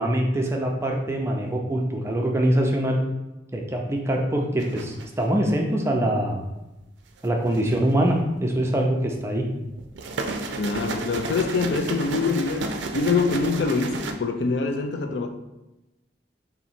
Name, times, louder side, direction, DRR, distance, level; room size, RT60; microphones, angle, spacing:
voice 1, 0.0-3.0 3.5-6.4 7.2-9.4, right 1 dB, 15° right, 1 dB, 0.5 m, -24 dB
sound 1, 4.6-5.2 7.2-7.9 9.8-14.1, right 3 dB, 70° right, 0.4 m, -32 dB
voice 2, 10.6-15.3, left 4 dB, 65° left, 5 dB, 0.4 m, -24 dB
4.0 x 2.7 x 4.3 m, 0.98 s
head